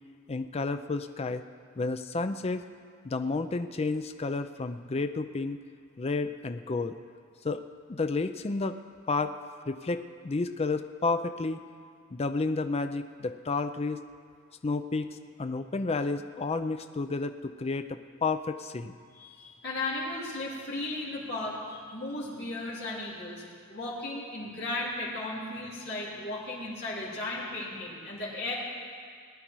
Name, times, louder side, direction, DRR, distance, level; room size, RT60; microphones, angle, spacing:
voice 1, 0.3-1.4 1.8-2.6 3.0-5.6 6.0-7.0 7.4-7.6 7.9-8.7 9.1-9.4 9.7-11.6 12.1-14.0 14.6-15.1 15.4-19.0, left 3 dB, 30° left, 9 dB, 0.5 m, -31 dB
voice 2, 19.1-23.4 23.7-28.5, left 2 dB, 50° left, -8 dB, 3.7 m, -35 dB
19.5 x 10.5 x 4.6 m, 2.2 s
head